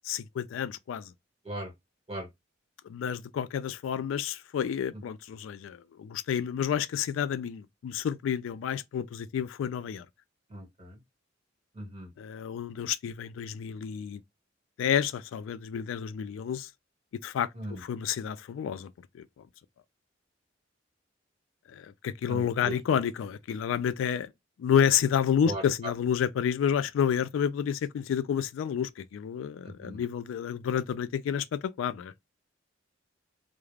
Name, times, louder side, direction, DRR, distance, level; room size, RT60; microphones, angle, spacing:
voice 1, 0.0-1.1 2.8-10.1 12.2-14.2 14.8-16.7 17.2-19.2 21.7-24.3 24.6-32.1, left 8 dB, 85° left, 0.3 m, -30 dB
voice 2, 10.5-11.0 11.7-12.1 17.5-17.8 22.3-22.8 25.4-25.6 29.6-30.0, right 1 dB, 30° right, 1.3 m, -38 dB
2.3 x 2.0 x 3.1 m
head